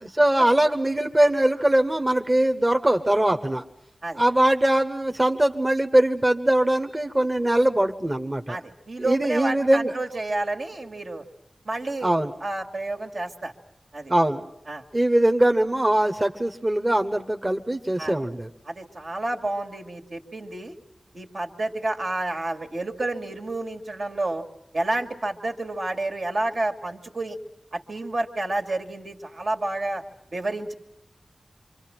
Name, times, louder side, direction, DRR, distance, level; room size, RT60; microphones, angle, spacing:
voice 1, 0.0-3.6 4.2-8.6 9.0-9.9 12.0-12.3 14.1-14.4 14.9-18.5, right 1 dB, 25° right, 6 dB, 1.1 m, -21 dB
voice 2, 8.5-11.2 11.6-12.1 12.4-13.5 13.9-14.1 14.7-14.8 18.0-18.1 18.6-20.7 21.1-24.4 24.7-27.4 27.7-30.0 30.3-30.7, right 2 dB, 70° right, 3 dB, 2.4 m, -30 dB
26.5 x 25.0 x 6.0 m, 0.82 s
wide cardioid pair, 80°, 0 cm